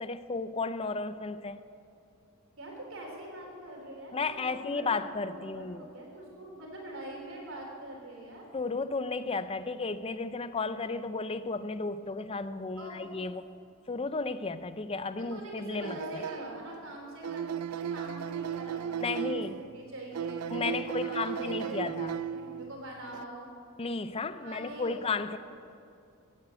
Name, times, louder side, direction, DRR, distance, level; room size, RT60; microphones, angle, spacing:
voice 1, 0.0-1.6 4.1-5.9 8.5-13.6 13.9-16.2 19.0-19.6 20.5-22.2 23.8-25.4, left 3 dB, 25° left, 13 dB, 0.5 m, -34 dB
voice 2, 2.6-8.5 12.8-13.1 15.2-23.5 24.4-25.4, right 1 dB, 60° right, -1 dB, 3.7 m, -44 dB
sound 1, 15.8-16.8 17.2-19.7 20.1-22.7 23.1-23.2, right 8 dB, 80° right, 0.4 m, -36 dB
16.5 x 9.1 x 8.3 m, 2.5 s
head